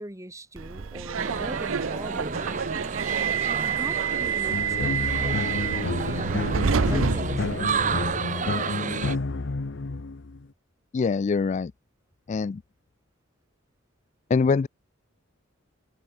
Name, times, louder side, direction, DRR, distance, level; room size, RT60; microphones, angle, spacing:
voice 1, 0.0-2.8 3.5-6.5 6.8-9.0, right 1 dB, 15° right, 2.6 m, -41 dB
Subway metro underground, 0.6-8.2, right 6 dB, 85° right, 0.6 m, -28 dB
sound 1, 1.2-9.2, right 5 dB, 40° right, 1.2 m, -31 dB
sound 2, 4.5-10.5, left 3 dB, 60° left, 0.8 m, -30 dB
voice 2, 10.9-11.7 12.3-12.6 14.3-14.7, left 4 dB, 35° left, 0.3 m, -23 dB
head